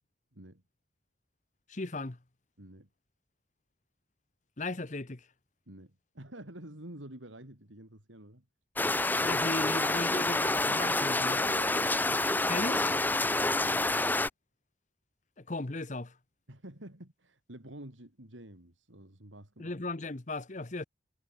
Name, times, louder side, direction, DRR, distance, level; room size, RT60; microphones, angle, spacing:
voice 1, 0.3-0.6 2.6-2.9 5.7-8.5 11.4-12.3 16.5-19.7, right 1 dB, 85° right, 4.1 m, -49 dB
voice 2, 1.7-2.2 4.6-5.3 9.2-11.4 12.5-12.9 15.4-16.2 19.6-20.8, left 2 dB, 40° left, 1.1 m, -36 dB
sound 1, 8.8-14.3, left 2 dB, 10° left, 0.9 m, -28 dB
head